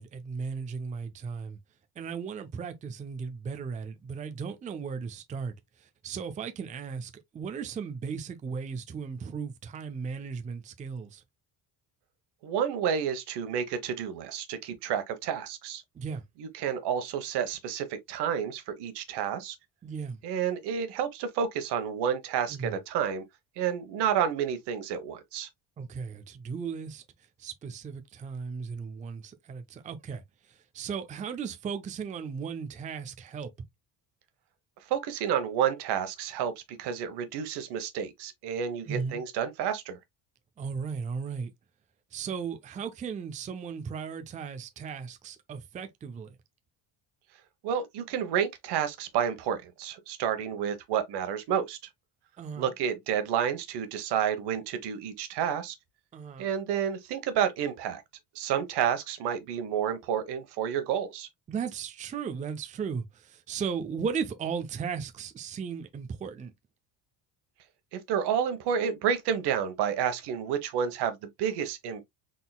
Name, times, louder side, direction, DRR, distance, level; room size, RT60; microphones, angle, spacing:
voice 1, 0.0-1.6 2.0-5.5 5.8-11.2 16.0-16.2 19.8-20.2 22.5-22.7 25.8-27.0 27.4-30.2 30.5-33.5 38.9-39.2 40.6-41.5 42.1-46.4 52.4-52.7 56.1-56.5 61.5-66.5, right 6 dB, 20° right, 0.4 m, -36 dB
voice 2, 12.4-15.8 16.4-19.5 20.2-23.2 23.6-25.5 34.9-36.5 36.8-40.0 47.6-51.8 52.6-55.7 56.4-58.0 58.3-61.3 67.9-72.0, right 8 dB, 80° right, 1.1 m, -30 dB
4.0 x 3.8 x 2.3 m
cardioid pair, 150°, 40 cm